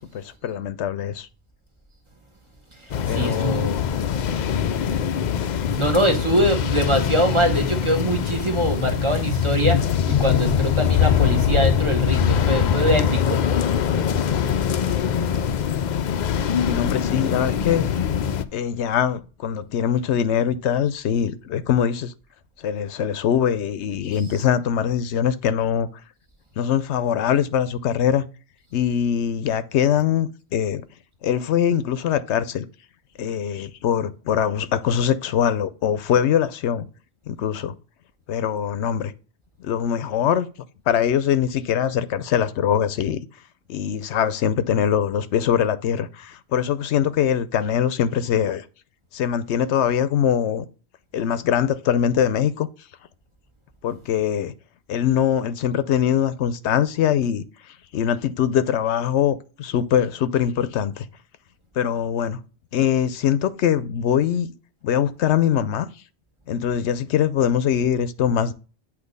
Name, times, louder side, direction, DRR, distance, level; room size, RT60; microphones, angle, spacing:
voice 1, 0.1-1.3 3.1-4.1 4.8-4.9 16.7-17.9 18.5-22.1 22.6-25.9 26.6-28.2 28.7-30.8 31.2-32.7 33.2-36.9 37.3-37.8 38.3-39.1 39.6-40.5 40.9-43.2 43.7-48.6 49.1-50.7 51.1-52.7 53.8-54.5 54.9-57.4 57.9-61.1 61.8-62.4 62.7-64.5 64.8-65.9 66.5-68.5, left 9 dB, 85° left, 0.9 m, -22 dB
voice 2, 2.8-3.8 5.8-13.4 14.4-14.5, right 1 dB, 25° right, 1.3 m, -23 dB
sound 1, 2.9-18.4, left 8 dB, 55° left, 0.5 m, -22 dB
8.2 x 3.0 x 5.2 m
omnidirectional pair, 1.1 m